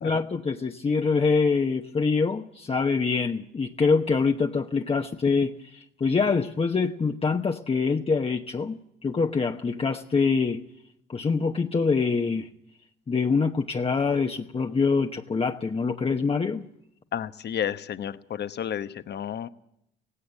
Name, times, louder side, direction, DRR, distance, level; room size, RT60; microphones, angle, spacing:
voice 1, 0.0-10.6 11.1-12.5 13.1-16.7, left 4 dB, 30° left, 4 dB, 1.0 m, -25 dB
voice 2, 17.1-19.5, left 9 dB, 55° left, 13 dB, 1.0 m, -31 dB
17.0 x 17.0 x 9.1 m, 0.78 s
cardioid pair, 90°, 20 cm